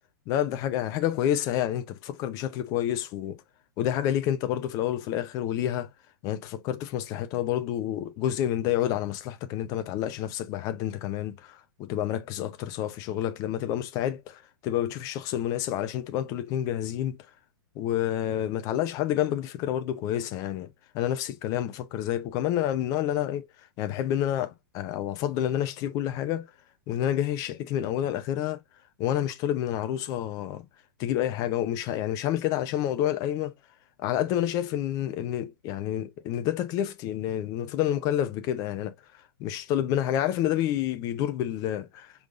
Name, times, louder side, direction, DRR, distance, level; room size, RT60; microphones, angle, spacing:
voice 1, 0.3-3.4 3.8-5.9 6.2-17.2 17.7-23.5 23.8-26.5 26.9-28.6 29.0-30.6 31.0-33.5 34.0-38.9 39.4-42.1, left 11 dB, 30° left, 0.7 m, -29 dB
5.4 x 3.6 x 2.4 m
figure-of-eight pair, 110°, 12 cm